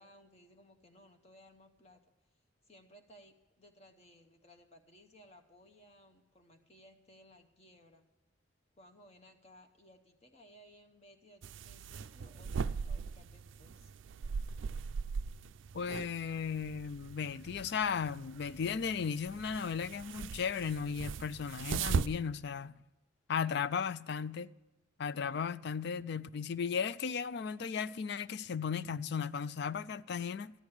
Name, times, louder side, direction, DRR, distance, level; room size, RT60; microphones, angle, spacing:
voice 1, 0.0-2.0 2.7-8.0 8.8-13.9, equal, 30° left, 0.8 m, -60 dB
sound 1, 11.4-22.1, right 5 dB, 70° right, 0.4 m, -39 dB
voice 2, 15.7-22.8 23.3-24.5 25.0-30.5, left 6 dB, 55° left, 0.4 m, -36 dB
13.0 x 10.0 x 4.8 m
head